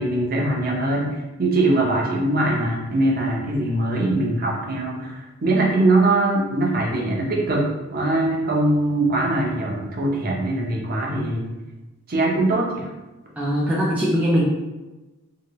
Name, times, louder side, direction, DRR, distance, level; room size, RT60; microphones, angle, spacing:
voice 1, 0.0-11.5 12.1-12.9, right 2 dB, 45° right, -2 dB, 0.6 m, -22 dB
voice 2, 13.4-14.4, equal, 5° right, -7 dB, 0.4 m, -21 dB
2.9 x 2.8 x 2.9 m, 1.1 s
head